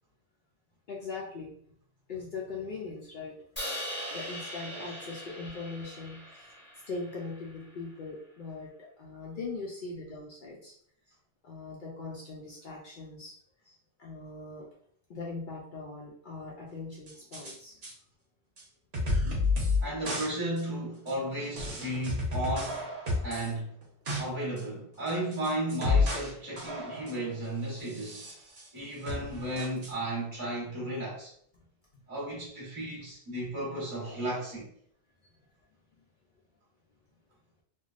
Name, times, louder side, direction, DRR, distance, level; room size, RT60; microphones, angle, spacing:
voice 1, 0.9-1.5 2.1-3.4 4.1-6.5 6.9-10.7 11.4-13.4 14.0-14.7 15.1-17.8, left 3 dB, 60° left, 0.6 m, -40 dB
Crash cymbal, 3.6-7.7, equal, 10° left, 0.8 m, -41 dB
sound 1, 17.1-17.5 17.8-17.9 18.6-18.7 18.9-19.8 20.1-20.3 20.6-20.7 21.1-21.2 21.6-23.5 23.8-24.2 24.6-24.7 25.1-26.3 26.6-27.2 27.8-28.7 29.1-29.9, left 3 dB, 75° right, 1.2 m, -31 dB
voice 2, 19.8-22.8 23.2-23.7 24.2-28.2 28.7-31.3 32.1-34.7, right 1 dB, 30° right, 1.2 m, -34 dB
3.3 x 2.2 x 2.4 m
omnidirectional pair, 1.1 m